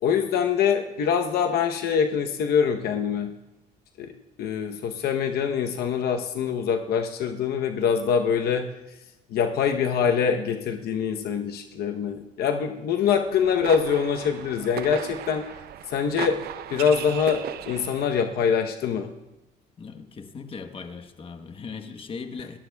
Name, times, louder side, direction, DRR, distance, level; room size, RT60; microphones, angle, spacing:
voice 1, 0.0-3.3 4.0-4.1 4.4-8.7 9.3-15.5 15.9-16.4 16.7-19.1, left 7 dB, 70° left, 4 dB, 0.9 m, -24 dB
sound 1, 13.2-18.3, right 10 dB, 65° right, 0.7 m, -37 dB
voice 2, 19.8-22.6, left 5 dB, 30° left, 7 dB, 1.2 m, -38 dB
28.0 x 14.5 x 2.3 m, 1.0 s
cardioid pair, 110°, 17 cm